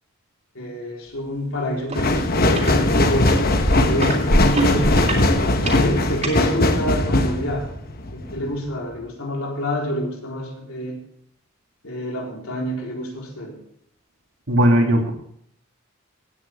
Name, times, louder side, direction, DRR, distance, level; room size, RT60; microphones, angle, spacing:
voice 1, 0.5-3.4 3.7-5.1 5.6-7.7 8.1-11.0 11.8-13.6, equal, 85° left, 0 dB, 3.9 m, -27 dB
sound 1, 1.9-8.5 8.9-9.0, left 2 dB, 45° left, 1.1 m, -20 dB
sound 2, 1.9-2.0 2.4-2.7 3.3-6.4 7.1-7.2, right 1 dB, 35° right, 3.1 m, -23 dB
voice 2, 14.5-15.1, equal, 70° right, 1 dB, 2.8 m, -17 dB
17.0 x 9.7 x 3.5 m, 0.69 s
head